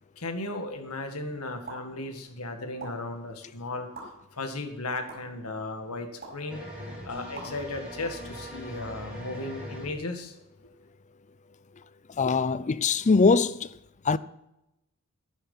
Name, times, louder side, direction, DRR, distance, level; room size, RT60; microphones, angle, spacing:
voice 1, 0.2-3.9 4.3-6.6 7.0-10.3, left 2 dB, 75° left, 1.9 m, -35 dB
sound 1, 1.7-1.8 2.8-2.9 3.9-4.0 5.1-5.2 6.2-6.4 7.3-7.5, right 3 dB, 45° right, 5.6 m, -40 dB
sound 2, 6.5-9.9, equal, 5° right, 5.1 m, -41 dB
voice 2, 12.2-13.7 14.1-14.2, left 4 dB, 35° left, 0.5 m, -22 dB
11.5 x 10.0 x 5.6 m
head